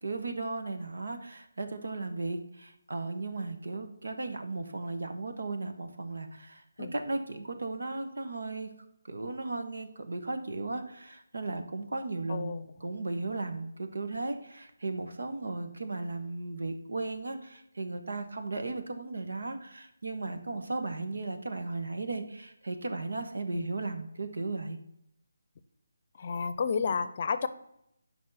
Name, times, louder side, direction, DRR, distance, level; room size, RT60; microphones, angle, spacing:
voice 1, 0.0-8.7 9.1-24.8, right 3 dB, 70° right, 7 dB, 1.4 m, -36 dB
voice 2, 12.3-12.7 23.5-23.7 26.2-27.5, left 5 dB, 40° left, 13 dB, 0.6 m, -31 dB
8.7 x 5.6 x 5.6 m, 0.78 s
figure-of-eight pair, 155°, 0 cm